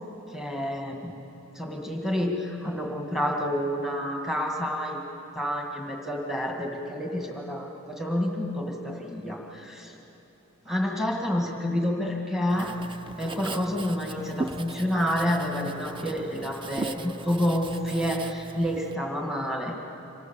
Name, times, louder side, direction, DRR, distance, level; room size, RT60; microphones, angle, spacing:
voice 1, 0.3-1.1 1.5-5.0 5.3-9.9 10.6-12.7 13.2-19.8, equal, ahead, 0 dB, 1.7 m, -29 dB
Writing, 12.5-18.9, right 3 dB, 25° right, 0.5 m, -38 dB
25.5 x 18.0 x 7.3 m, 3.0 s
head